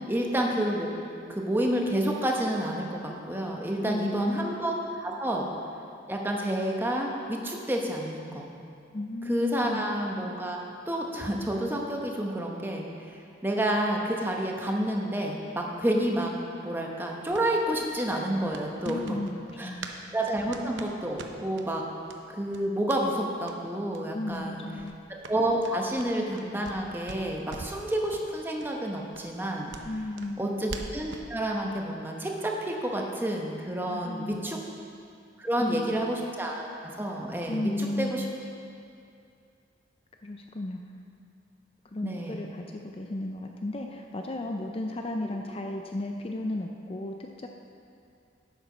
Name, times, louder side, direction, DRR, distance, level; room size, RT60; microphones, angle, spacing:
voice 1, 0.1-0.9 1.3-5.5 6.1-8.5 9.3-10.6 10.9-16.3 16.6-19.2 19.6-19.8 20.1-21.8 22.3-24.6 25.3-29.7 30.4-34.6 35.4-38.2 42.0-42.4 45.2-45.4, right 1 dB, 10° right, 0 dB, 0.9 m, -29 dB
voice 2, 3.9-4.6 8.9-9.8 18.8-19.4 19.6-19.9 24.1-24.9 29.8-30.5 33.9-34.6 35.5-36.1 37.5-38.4 40.2-40.8 41.8-47.5, left 2 dB, 30° left, 3 dB, 0.4 m, -34 dB
sound 1, 17.3-20.0 20.2-21.7 22.1-22.2 22.5-23.0 23.4-23.6 23.9-24.0 24.3-24.5 24.8-26.8 27.1-27.8 28.1-28.3 28.6-28.7 29.1-31.3, right 3 dB, 80° right, 0.7 m, -43 dB
8.4 x 8.3 x 6.0 m, 2.5 s
head